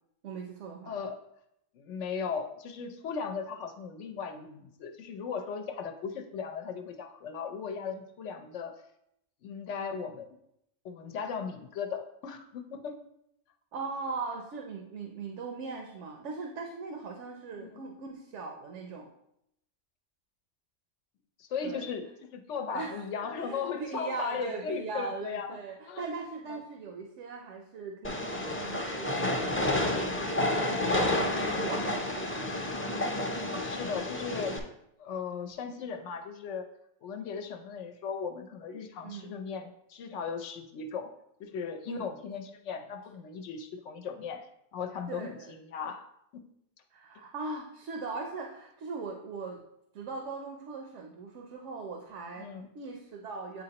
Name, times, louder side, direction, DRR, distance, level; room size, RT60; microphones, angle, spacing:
voice 1, 0.2-0.9 13.7-19.1 21.6-21.8 22.7-32.5 39.0-39.3 41.9-42.1 45.1-45.5 46.9-49.6 49.9-52.5 52.7-53.6, right 4 dB, 85° right, 2 dB, 1.0 m, -40 dB
voice 2, 0.9-1.2 1.7-8.8 9.4-10.3 10.8-13.0 17.5-17.7 21.4-22.1 22.3-25.6 25.9-26.1 26.5-26.6 30.1-30.3 33.6-34.6 35.0-36.7 37.0-41.1 41.4-46.1 46.3-46.4 52.4-52.7, left 6 dB, 90° left, 7 dB, 1.0 m, -37 dB
Train, 28.0-34.6, left 1 dB, 15° left, 0.4 m, -30 dB
8.6 x 4.1 x 2.9 m, 0.77 s
omnidirectional pair, 1.2 m